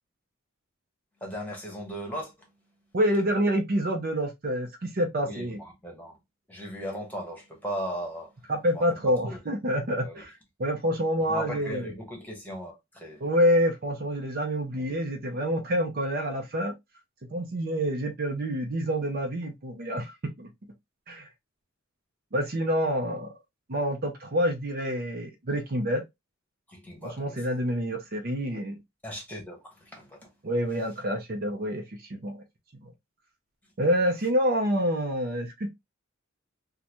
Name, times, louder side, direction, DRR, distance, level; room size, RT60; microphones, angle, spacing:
voice 1, 1.2-2.9 5.2-6.2 6.5-9.4 10.0-10.3 11.2-13.2 14.7-15.1 26.7-27.6 29.0-30.3, equal, 10° left, 1.1 m, -38 dB
voice 2, 2.9-5.6 8.5-10.3 10.6-11.8 13.2-16.7 17.3-20.5 21.1-21.3 22.3-23.3 23.7-26.0 27.0-28.8 30.4-31.8 32.1-32.4 32.8-32.9 33.8-35.7, equal, 45° right, 0.6 m, -27 dB
3.8 x 2.2 x 2.9 m
head